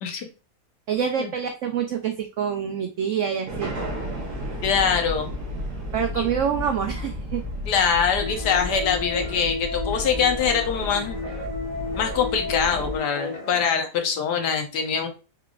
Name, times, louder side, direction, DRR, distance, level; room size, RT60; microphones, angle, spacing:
voice 1, 0.9-3.9 5.9-7.4, right 8 dB, 85° right, 5 dB, 0.6 m, -26 dB
sound 1, 3.5-13.0, left 1 dB, 65° right, 1.5 m, -33 dB
voice 2, 4.6-5.3 6.2-6.3 7.7-11.2 12.0-15.1, left 6 dB, 75° left, 5 dB, 1.4 m, -23 dB
sound 2, 8.2-13.6, left 3 dB, 40° left, 0.6 m, -33 dB
5.0 x 3.3 x 2.4 m, 0.32 s
omnidirectional pair, 1.9 m